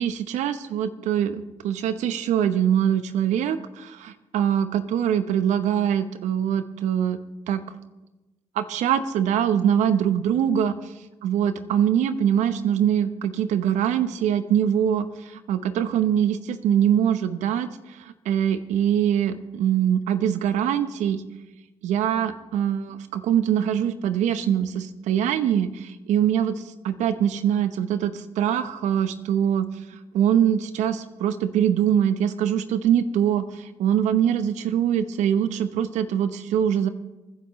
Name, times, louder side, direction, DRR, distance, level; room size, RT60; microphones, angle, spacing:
voice 1, 0.0-7.2 7.5-7.6 8.5-10.7 11.2-21.2 21.8-29.7 30.1-36.9, right 9 dB, 75° right, 11 dB, 0.8 m, -23 dB
27.0 x 10.5 x 3.2 m, 1.1 s
hypercardioid pair, 50°, 12 cm